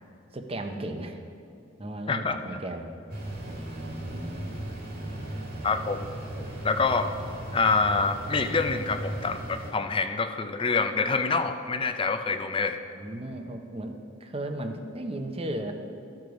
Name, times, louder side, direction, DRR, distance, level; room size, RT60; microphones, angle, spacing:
voice 1, 0.3-1.2 1.8-2.9 3.4-4.6 5.0-5.7 6.3-6.6 12.9-15.7, right 1 dB, 30° right, 5 dB, 0.7 m, -36 dB
voice 2, 2.1-2.4 5.6-6.1 6.6-7.1 7.5-12.8, left 4 dB, 25° left, 8 dB, 0.4 m, -26 dB
sound 1, 3.1-9.7, right 1 dB, 50° right, 1.7 m, -37 dB
14.0 x 4.8 x 5.1 m, 2.7 s
head